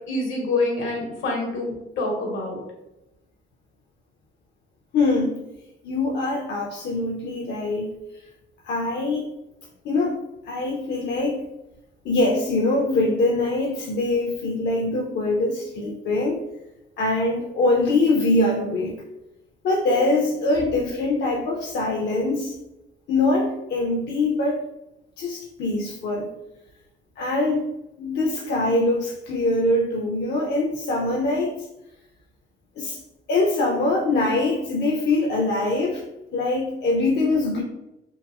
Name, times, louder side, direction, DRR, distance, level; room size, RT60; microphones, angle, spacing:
voice 1, 0.1-2.6, left 2 dB, 80° left, -1 dB, 0.9 m, -26 dB
voice 2, 4.9-5.3 5.8-7.9 8.6-9.3 9.8-10.2 10.5-11.4 12.0-16.4 17.0-18.9 19.6-22.5 23.1-24.6 25.2-26.3 27.2-27.6 28.0-31.5 32.8-33.0 33.3-36.0 36.3-37.6, left 2 dB, 60° left, 0 dB, 0.4 m, -23 dB
2.9 x 2.6 x 2.3 m, 0.92 s
cardioid pair, 90°, 20 cm